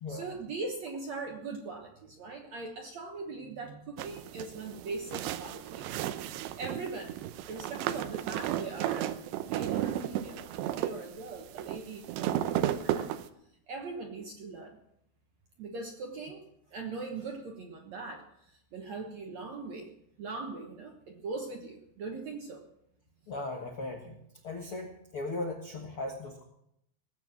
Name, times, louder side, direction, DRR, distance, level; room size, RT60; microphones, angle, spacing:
voice 1, 0.1-5.9 6.4-7.2 7.5-13.1 13.7-14.8 15.6-16.4 16.7-19.9 20.2-22.6, right 3 dB, 60° right, 2 dB, 1.9 m, -41 dB
sound 1, 4.0-13.3, right 12 dB, 90° right, 2.9 m, -34 dB
voice 2, 23.3-24.2 24.4-26.4, left 2 dB, 60° left, 1 dB, 1.4 m, -37 dB
19.5 x 8.3 x 7.5 m, 0.77 s
omnidirectional pair, 4.8 m